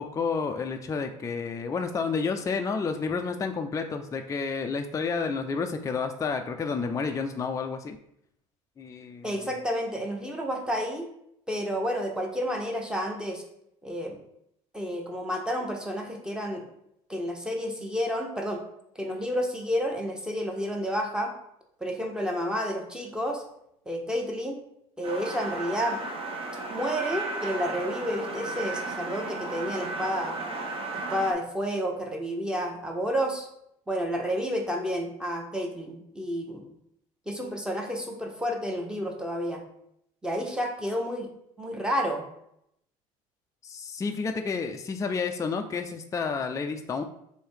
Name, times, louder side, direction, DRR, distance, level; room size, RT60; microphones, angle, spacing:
voice 1, 0.0-8.0 8.8-9.4 43.6-47.0, left 5 dB, 20° left, 5 dB, 0.4 m, -30 dB
voice 2, 9.2-11.1 11.5-13.4 13.8-14.2 14.7-16.6 17.1-18.6 18.9-21.3 21.8-23.4 23.9-24.6 25.0-26.0 26.7-30.4 30.9-33.5 33.9-36.7 37.3-39.6 40.2-41.3 41.6-42.2, equal, 5° right, 1 dB, 1.0 m, -30 dB
sound 1, 25.0-31.3, right 3 dB, 35° right, 0.8 m, -34 dB
3.1 x 2.8 x 4.6 m, 0.75 s
hypercardioid pair, 70°, 17 cm